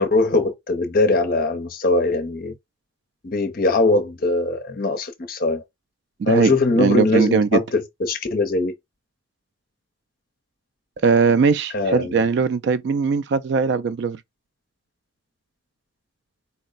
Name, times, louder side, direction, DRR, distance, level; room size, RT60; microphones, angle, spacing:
voice 1, 0.0-2.5 3.2-5.6 6.3-8.7 11.7-12.2, left 2 dB, 45° left, 0.6 m, -21 dB
voice 2, 6.2-7.6 11.0-14.2, right 5 dB, 55° right, 0.3 m, -20 dB
4.2 x 2.0 x 3.9 m
head